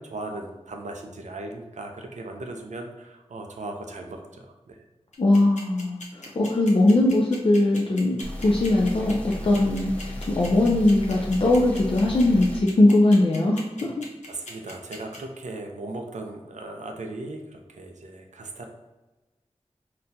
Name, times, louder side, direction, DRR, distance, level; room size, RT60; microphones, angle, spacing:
voice 1, 0.0-4.8 14.3-18.7, right 2 dB, 85° right, 3 dB, 0.5 m, -37 dB
sound 1, 5.1-15.2, left 2 dB, 85° left, 0.7 m, -40 dB
voice 2, 5.2-13.9, left 2 dB, 50° left, -2 dB, 0.4 m, -20 dB
sound 2, 8.2-12.6, left 1 dB, 10° left, 0.6 m, -35 dB
4.0 x 2.2 x 2.7 m, 1.1 s
wide cardioid pair, 55°, 12 cm